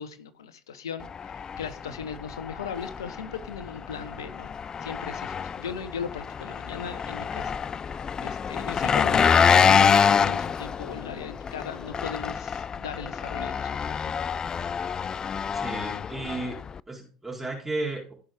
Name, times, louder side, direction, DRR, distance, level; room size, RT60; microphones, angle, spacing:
voice 1, 0.0-4.5 4.8-7.6 7.9-14.1, left 6 dB, 80° left, 12 dB, 1.2 m, -38 dB
Engine, 1.0-16.8, left 6 dB, 30° left, 0.4 m, -26 dB
voice 2, 15.5-16.6 16.9-18.1, right 2 dB, 10° right, -2 dB, 3.7 m, -33 dB
16.0 x 6.1 x 3.6 m, 0.41 s
hypercardioid pair, 70°, 2 cm